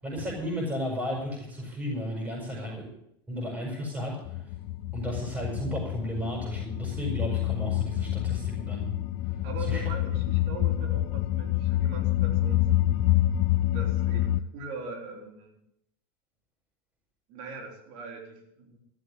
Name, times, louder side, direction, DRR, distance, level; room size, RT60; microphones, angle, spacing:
voice 1, 0.0-2.8 3.3-4.5 4.9-8.9 9.7-9.8, equal, 15° right, -2 dB, 6.5 m, -33 dB
voice 2, 2.4-2.8 9.4-13.1 13.7-15.5 17.3-18.8, right 4 dB, 60° right, 2 dB, 4.1 m, -41 dB
sound 1, 4.3-14.4, left 14 dB, 55° left, 0.5 m, -27 dB
14.0 x 7.5 x 9.9 m, 0.77 s
supercardioid pair, 130°, 12 cm